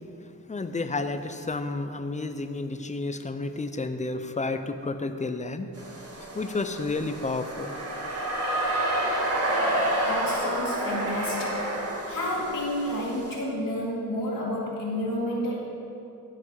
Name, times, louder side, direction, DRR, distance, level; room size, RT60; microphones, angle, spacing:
voice 1, 0.5-5.7 6.3-7.8, left 3 dB, 20° left, 9 dB, 0.6 m, -31 dB
sound 1, 5.8-13.3, right 1 dB, 45° right, 1.8 m, -29 dB
voice 2, 10.0-11.6 12.1-15.6, left 1 dB, 70° left, -6 dB, 2.3 m, -30 dB
14.5 x 6.0 x 4.7 m, 2.7 s
wide cardioid pair, 80°, 34 cm